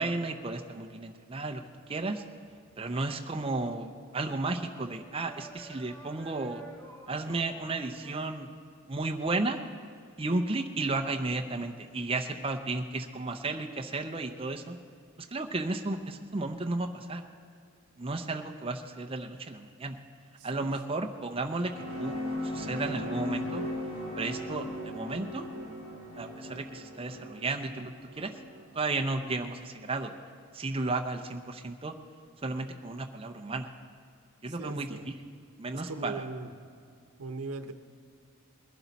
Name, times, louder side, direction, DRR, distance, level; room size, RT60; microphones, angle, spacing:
voice 1, 0.0-1.6 1.9-2.2 2.8-6.6 7.1-8.5 8.9-9.6 10.2-14.8 15.3-17.2 18.0-20.0 20.4-22.2 22.4-23.6 24.2-25.5 26.2-28.3 28.7-30.1 30.5-31.9 32.4-33.7 34.4-35.1 35.6-36.2, right 2 dB, 25° right, 5 dB, 0.6 m, -33 dB
sound 1, 1.6-8.2, right 2 dB, 10° left, 1.4 m, -53 dB
voice 2, 20.4-20.7 34.5-35.1 35.7-36.5 37.2-37.7, right 3 dB, 85° right, 8 dB, 0.8 m, -39 dB
sound 2, 21.3-30.0, left 1 dB, 55° left, 3.6 m, -38 dB
20.5 x 11.5 x 4.1 m, 2.3 s
head